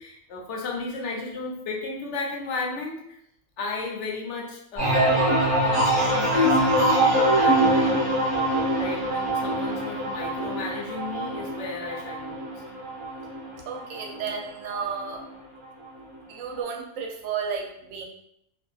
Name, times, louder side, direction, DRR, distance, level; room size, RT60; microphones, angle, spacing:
voice 1, 0.0-3.2 3.6-5.3 5.7-8.3 8.7-12.5, left 3 dB, 70° left, -1 dB, 0.9 m, -34 dB
sound 1, 4.8-14.3 14.7-15.2, right 1 dB, 15° left, 1.2 m, -23 dB
voice 2, 13.7-15.2 16.3-18.0, right 6 dB, 90° right, 1 dB, 1.0 m, -32 dB
2.6 x 2.5 x 2.3 m, 0.75 s
omnidirectional pair, 1.3 m